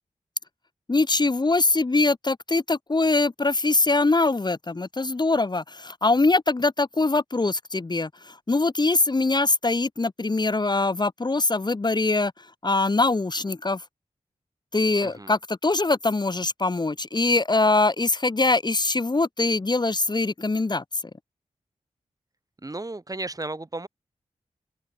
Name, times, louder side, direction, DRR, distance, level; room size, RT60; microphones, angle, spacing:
voice 1, 0.9-12.3 12.6-13.8 14.7-20.8, left 3 dB, 35° left, 1.2 m, -23 dB
voice 2, 15.0-15.3 22.6-23.9, right 2 dB, 30° right, 1.7 m, -34 dB
cardioid pair, 50°, 13 cm